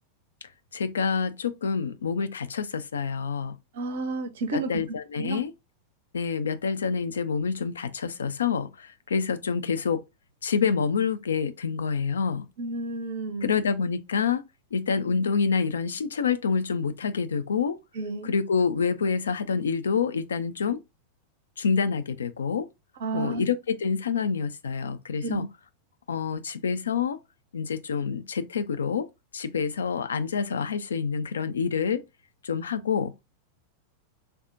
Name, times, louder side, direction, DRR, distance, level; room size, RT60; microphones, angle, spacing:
voice 1, 0.7-3.6 4.5-5.5 6.1-10.0 10.4-12.5 13.4-14.4 14.7-17.8 18.2-20.8 21.6-22.7 23.1-25.5 26.1-27.2 27.5-29.1 29.3-32.0 32.4-33.1, left 6 dB, 70° left, 0.3 m, -27 dB
voice 2, 3.7-4.7 5.2-5.4 12.6-13.6 17.9-18.3 23.0-23.4 25.2-25.5, right 3 dB, 60° right, 0.5 m, -31 dB
3.4 x 2.0 x 2.5 m
figure-of-eight pair, 90°, 0 cm